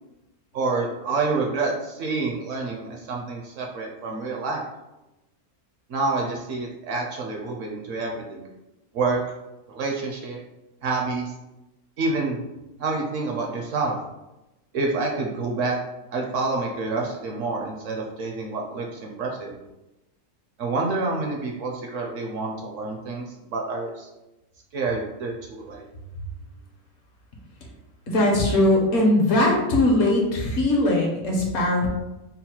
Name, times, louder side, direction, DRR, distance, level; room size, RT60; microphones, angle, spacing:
voice 1, 0.5-4.6 5.9-8.5 8.9-9.2 9.7-10.4 10.8-11.3 12.0-12.4 12.8-13.9 14.7-15.8 16.1-19.6 20.6-24.1 24.7-25.9, right 3 dB, 65° right, 0 dB, 0.9 m, -28 dB
voice 2, 28.1-31.9, left 1 dB, 60° left, -1 dB, 1.1 m, -20 dB
3.9 x 2.0 x 4.3 m, 0.99 s
omnidirectional pair, 1.6 m